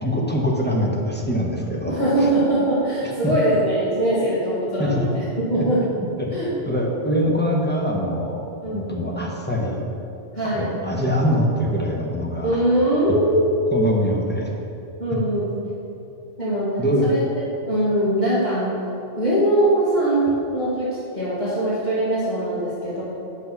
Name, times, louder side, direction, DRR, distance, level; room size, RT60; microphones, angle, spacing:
voice 1, 0.0-2.0 4.8-5.1 5.6-5.7 6.2-6.4 6.6-8.4 8.7-9.8 10.4-12.6 13.7-14.5 16.8-17.2, equal, 10° left, -2 dB, 1.1 m, -23 dB
voice 2, 1.9-5.2 5.5-5.8 6.3-6.5 8.6-9.0 10.3-10.7 12.4-13.7 15.0-15.5 16.4-16.7 17.0-17.2 17.6-18.7 19.1-23.0, right 1 dB, 35° left, -10 dB, 2.0 m, -21 dB
8.3 x 6.3 x 6.0 m, 2.7 s
omnidirectional pair, 1.2 m